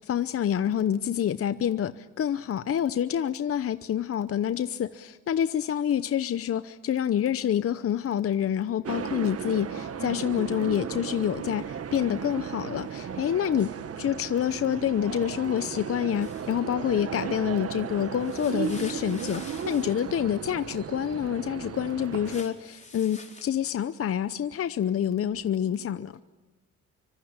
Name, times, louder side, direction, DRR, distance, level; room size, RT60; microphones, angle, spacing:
voice 1, 0.0-26.2, left 10 dB, 50° left, 13 dB, 0.8 m, -27 dB
voice 2, 1.2-1.5 4.6-4.9 21.6-22.0 25.6-26.2, left 9 dB, 80° left, 4 dB, 3.5 m, -55 dB
sound 1, 8.8-22.4, right 7 dB, 50° right, 1.5 m, -35 dB
sound 2, 16.2-16.5 18.2-20.1 22.2-23.4, left 3 dB, 25° left, 4.4 m, -47 dB
25.5 x 25.0 x 8.8 m, 1.2 s
cardioid pair, 90°, 30 cm